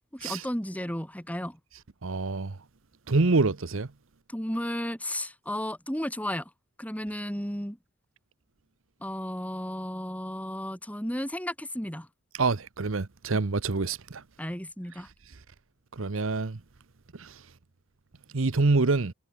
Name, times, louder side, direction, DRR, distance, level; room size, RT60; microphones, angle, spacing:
voice 1, 0.0-1.6 4.3-6.5 6.8-7.8 9.0-12.1 14.4-15.1, equal, 5° left, 6.0 m, -33 dB
voice 2, 2.0-2.6 3.1-3.9 12.4-14.2 15.9-16.6 17.2-17.4 18.3-19.1, right 3 dB, 70° right, 0.9 m, -26 dB
head